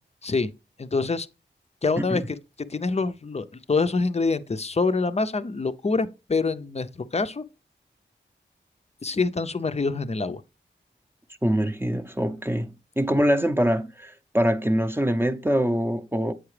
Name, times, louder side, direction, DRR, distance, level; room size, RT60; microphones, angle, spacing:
voice 1, 0.8-1.3 1.8-2.2 2.7-7.4 9.0-10.4, left 3 dB, 35° left, 0.5 m, -25 dB
voice 2, 11.4-16.3, equal, 10° right, 0.6 m, -24 dB
7.8 x 4.7 x 3.2 m
cardioid pair, 50°, 20 cm